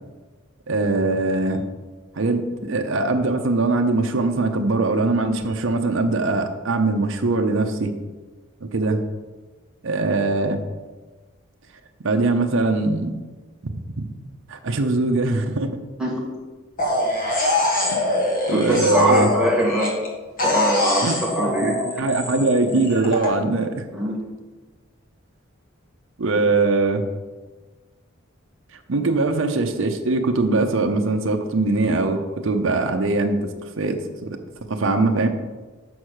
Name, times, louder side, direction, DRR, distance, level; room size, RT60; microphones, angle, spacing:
voice 1, 0.7-1.6 2.1-7.9 8.6-9.0 9.8-10.6 12.0-13.2 13.6-14.1 14.5-15.7 17.9-18.2 18.5-19.3 21.0-21.2 21.4-23.9 26.2-27.0 28.9-34.4 34.7-35.3, right 3 dB, 70° right, 4 dB, 0.7 m, -22 dB
sound 1, 16.8-20.1 20.4-23.3, left 1 dB, 40° left, 1.8 m, -23 dB
voice 2, 18.9-20.0 20.4-21.7 23.9-24.2, equal, 5° right, -4 dB, 1.7 m, -22 dB
6.2 x 6.0 x 6.5 m, 1.3 s
head